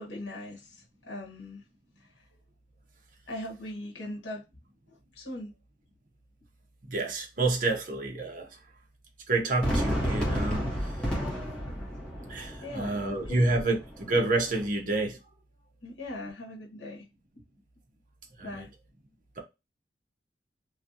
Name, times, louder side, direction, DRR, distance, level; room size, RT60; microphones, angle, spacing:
voice 1, 0.0-1.6 2.0-2.1 3.3-4.5 5.1-5.5 12.6-13.3 15.8-17.1 18.4-18.7, left 1 dB, 85° left, 1.0 m, -40 dB
voice 2, 6.9-8.5 9.3-10.7 12.3-15.2 18.4-18.6, right 2 dB, 50° right, 0.8 m, -28 dB
Fireworks, 9.6-14.7, equal, 5° left, 1.1 m, -32 dB
3.0 x 2.6 x 2.5 m
head